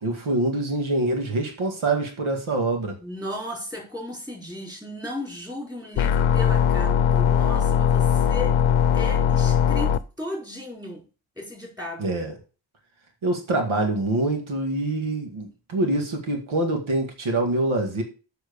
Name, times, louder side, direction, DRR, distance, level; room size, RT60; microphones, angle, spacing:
voice 1, 0.0-2.9 12.0-12.3 13.2-18.0, right 2 dB, 85° right, 3 dB, 2.3 m, -25 dB
voice 2, 3.0-8.5 8.9-11.0 11.4-12.1, left 1 dB, 10° right, 0 dB, 4.7 m, -35 dB
sound 1, 6.0-10.0, left 8 dB, 80° left, 0.7 m, -20 dB
7.6 x 6.2 x 6.9 m, 0.34 s
wide cardioid pair, 120°, 47 cm